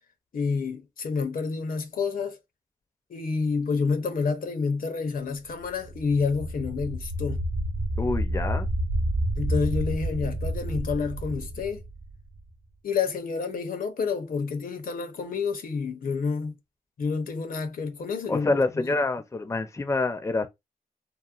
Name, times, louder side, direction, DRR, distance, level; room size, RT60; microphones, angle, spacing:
voice 1, 0.3-2.4 3.1-7.4 9.4-11.8 12.8-16.6 17.0-19.0, left 5 dB, 75° left, 0.6 m, -29 dB
sound 1, 5.7-12.5, right 1 dB, 65° right, 0.4 m, -29 dB
voice 2, 8.0-8.7 18.3-20.5, left 3 dB, 20° left, 0.4 m, -26 dB
2.9 x 2.0 x 2.3 m
cardioid pair, 65°, 15 cm